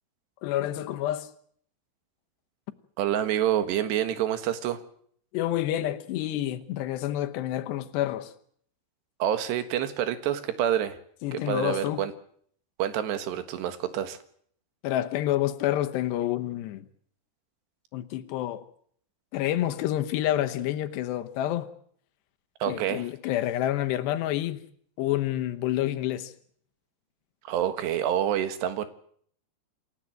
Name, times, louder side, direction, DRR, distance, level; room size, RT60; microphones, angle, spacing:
voice 1, 0.4-1.3 5.3-8.3 11.2-12.0 14.8-16.8 17.9-18.6 19.3-21.7 22.7-24.6 25.0-26.3, left 13 dB, 85° left, 3.2 m, -28 dB
voice 2, 3.0-4.8 9.2-11.0 11.5-12.1 12.8-14.2 22.6-23.1 27.5-28.9, right 10 dB, 85° right, 3.7 m, -27 dB
28.0 x 15.5 x 7.7 m
omnidirectional pair, 4.8 m